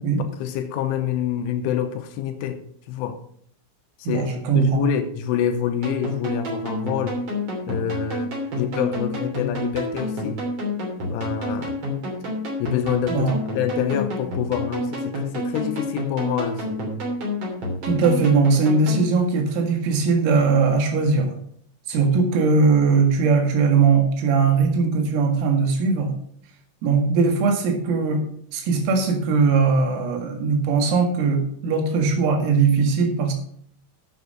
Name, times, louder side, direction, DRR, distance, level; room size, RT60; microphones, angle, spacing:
voice 1, 0.4-3.2 4.0-7.2 7.7-10.4 11.1-11.8 12.6-16.8, left 9 dB, 80° left, 8 dB, 3.1 m, -27 dB
voice 2, 4.1-4.8 13.1-13.4 17.8-21.4 21.9-26.1 26.8-28.2 28.5-33.3, right 4 dB, 80° right, 3 dB, 4.6 m, -20 dB
sound 1, 5.8-19.1, left 1 dB, 35° right, 3.3 m, -29 dB
9.4 x 7.3 x 6.5 m, 0.62 s
omnidirectional pair, 6.0 m